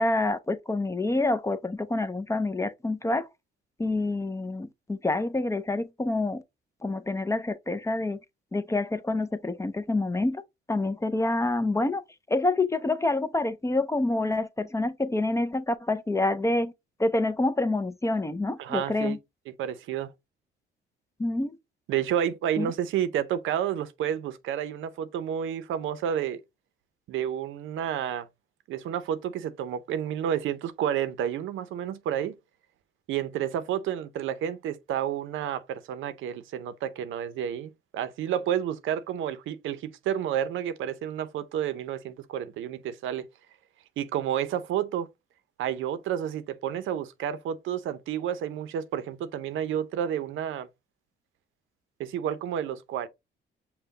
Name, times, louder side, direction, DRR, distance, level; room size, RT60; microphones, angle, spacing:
voice 1, 0.0-3.3 3.8-6.4 6.8-8.2 8.5-10.4 10.7-12.0 12.3-16.7 17.0-19.2 21.2-21.6 22.6-22.7, left 2 dB, 15° left, 0.5 m, -27 dB
voice 2, 18.6-19.2 19.6-20.1 21.9-26.4 27.1-28.3 28.7-32.3 33.1-43.3 44.0-45.1 45.6-50.7 52.0-53.1, right 9 dB, 80° right, 0.6 m, -30 dB
5.7 x 2.2 x 3.9 m
cardioid pair, 90°, 20 cm